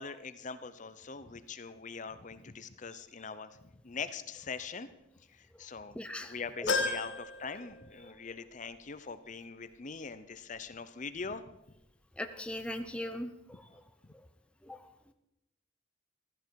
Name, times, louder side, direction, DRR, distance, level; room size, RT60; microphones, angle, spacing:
voice 1, 0.0-3.6 3.8-4.9 5.3-11.4 14.0-14.1, left 5 dB, 40° left, 12 dB, 0.7 m, -42 dB
voice 2, 5.9-6.7 7.6-7.7 8.0-8.1 12.2-13.8 14.1-14.3 14.6-14.9, left 1 dB, 5° left, 7 dB, 0.6 m, -41 dB
sound 1, 6.7-8.3 8.7-8.8 10.0-10.1, left 3 dB, 65° left, 1.6 m, -34 dB
15.5 x 13.5 x 4.7 m, 0.88 s
head